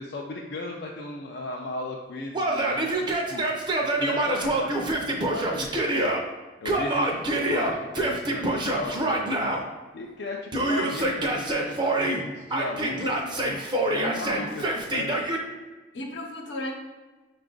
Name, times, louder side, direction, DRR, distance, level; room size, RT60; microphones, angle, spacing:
voice 1, 0.0-3.4 3.8-5.7 5.9-6.1 6.6-9.5 9.9-13.6 14.0-15.2, left 2 dB, 65° left, -1 dB, 0.4 m, -36 dB
Yell, 2.3-6.2 6.7-9.6 10.5-12.2 12.5-15.4, right 1 dB, 25° right, 0.5 m, -26 dB
voice 2, 13.9-14.5 15.9-16.7, left 1 dB, 85° left, 1 dB, 0.8 m, -34 dB
5.6 x 2.4 x 3.7 m, 1.3 s
head